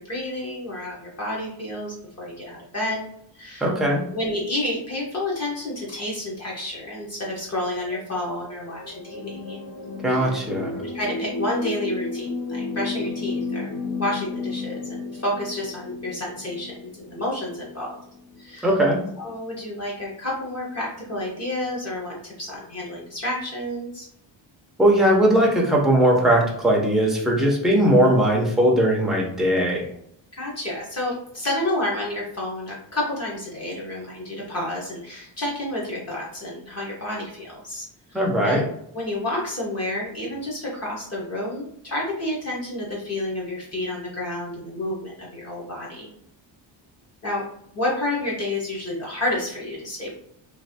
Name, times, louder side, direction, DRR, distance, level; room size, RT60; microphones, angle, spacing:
voice 1, 0.0-3.1 3.3-9.7 10.1-10.4 10.7-18.0 18.4-18.7 19.2-24.1 30.3-38.6 38.9-46.1 47.2-47.4 47.7-50.1, left 1 dB, 35° left, -5 dB, 1.0 m, -30 dB
voice 2, 3.6-4.0 10.0-10.7 18.6-19.0 24.8-29.9 38.1-38.6, right 1 dB, ahead, -2 dB, 0.6 m, -19 dB
sound 1, 7.8-18.5 19.4-19.5, left 3 dB, 55° left, 0.7 m, -33 dB
3.2 x 2.4 x 2.7 m, 0.71 s
cardioid pair, 150°, 46 cm